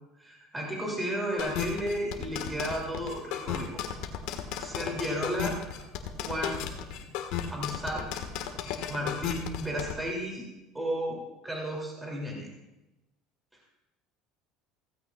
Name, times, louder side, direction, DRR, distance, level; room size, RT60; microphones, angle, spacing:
voice 1, 0.2-3.8 4.6-5.6 6.2-6.5 7.5-8.2 8.9-10.5 10.7-12.5, equal, 10° right, -2 dB, 2.7 m, -33 dB
sound 1, 1.4-9.9, left 9 dB, 70° left, 1.5 m, -34 dB
voice 2, 5.1-6.0 6.3-6.9, right 2 dB, 65° right, -1 dB, 4.3 m, -49 dB
16.0 x 15.0 x 2.4 m, 0.97 s
cardioid pair, 150°, 0 cm